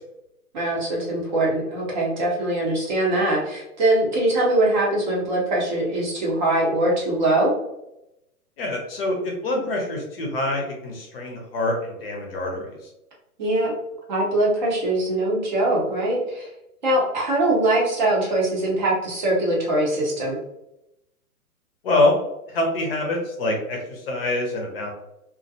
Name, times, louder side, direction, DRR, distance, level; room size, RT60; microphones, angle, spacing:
voice 1, 0.5-7.5 13.4-13.7 14.1-16.5 16.8-20.4, right 1 dB, 30° right, -4 dB, 0.6 m, -22 dB
voice 2, 8.6-12.8 21.8-22.1 22.5-24.9, left 2 dB, 40° left, 0 dB, 0.6 m, -25 dB
2.3 x 2.1 x 2.6 m, 0.86 s
hypercardioid pair, 145°, 45 cm